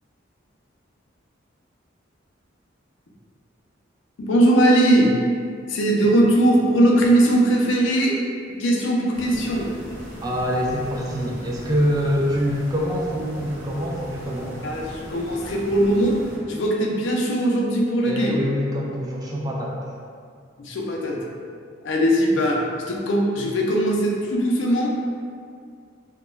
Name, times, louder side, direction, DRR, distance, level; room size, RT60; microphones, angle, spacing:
voice 1, 4.2-5.1 5.7-8.2 8.6-9.7 14.6-16.2 16.5-18.4 20.6-21.2 21.8-25.0, right 1 dB, 75° left, -1 dB, 0.4 m, -20 dB
sound 1, 9.1-16.4, equal, 50° right, 0.7 m, -39 dB
voice 2, 10.2-14.6 18.0-19.8, equal, 20° right, -3 dB, 0.3 m, -25 dB
2.3 x 2.1 x 3.0 m, 2.2 s
head